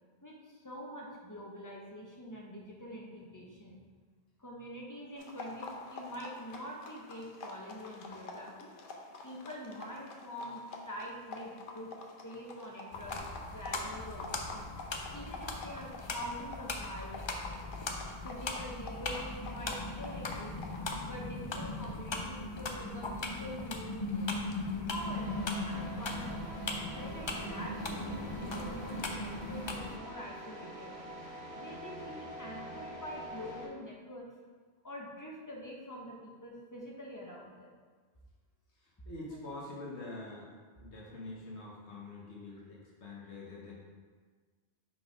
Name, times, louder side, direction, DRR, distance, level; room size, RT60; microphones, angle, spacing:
voice 1, 0.2-3.8 4.4-8.7 9.2-11.9 12.2-13.2 13.5-14.7 15.1-17.6 18.2-20.5 21.0-24.3 24.8-26.5 26.8-30.9 31.5-34.3 34.8-37.7, equal, 20° left, -2 dB, 0.9 m, -45 dB
sound 1, 5.2-21.1, left 3 dB, 55° left, 0.8 m, -47 dB
sound 2, 12.9-30.0, left 2 dB, 40° left, 0.4 m, -38 dB
sound 3, 25.0-33.7, right 1 dB, 85° right, 1.7 m, -46 dB
voice 2, 39.0-43.8, left 2 dB, 85° left, -4 dB, 1.5 m, -45 dB
5.5 x 4.1 x 5.0 m, 1.5 s
omnidirectional pair, 1.1 m